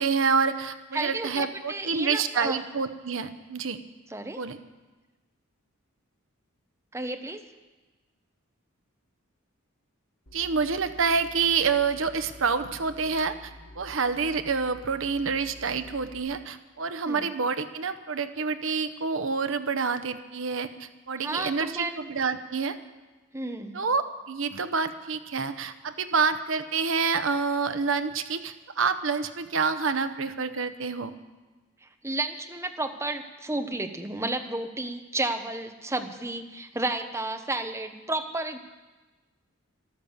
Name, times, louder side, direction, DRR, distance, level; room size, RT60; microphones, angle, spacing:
voice 1, 0.0-3.8 4.4-4.6 10.3-22.8 23.7-31.1, right 5 dB, 65° right, 10 dB, 0.9 m, -28 dB
voice 2, 0.9-2.6 4.1-4.4 6.9-7.4 17.1-17.2 21.2-22.0 23.3-23.7 31.8-38.6, right 2 dB, 15° right, 6 dB, 0.8 m, -32 dB
sound 1, 10.3-16.2, left 1 dB, 65° left, 2.9 m, -49 dB
13.5 x 12.0 x 7.2 m, 1.2 s
head